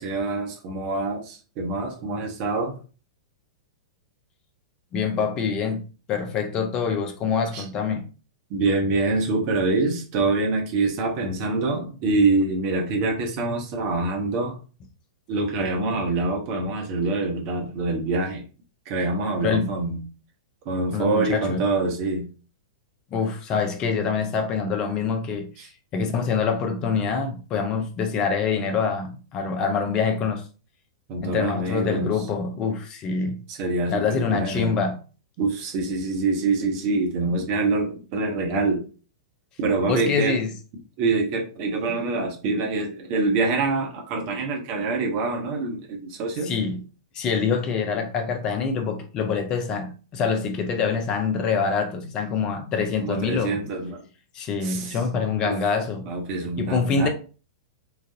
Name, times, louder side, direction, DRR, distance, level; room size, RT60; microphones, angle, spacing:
voice 1, 0.0-2.8 7.5-7.6 8.5-14.6 15.3-18.5 18.8-20.0 20.6-22.3 25.6-25.7 31.1-32.2 33.5-34.7 35.4-38.8 39.6-40.4 41.0-46.5 53.0-54.0 54.6-55.0 55.4-55.6 56.1-57.1, right 3 dB, 45° right, 1.1 m, -25 dB
voice 2, 4.9-8.0 19.4-19.7 20.9-21.6 23.1-30.4 31.2-33.4 33.9-35.0 39.9-40.5 46.4-46.8 47.1-53.6 54.3-56.1 56.6-57.1, left 5 dB, 30° left, 0.6 m, -25 dB
4.0 x 2.5 x 2.7 m
figure-of-eight pair, 100°, 2 cm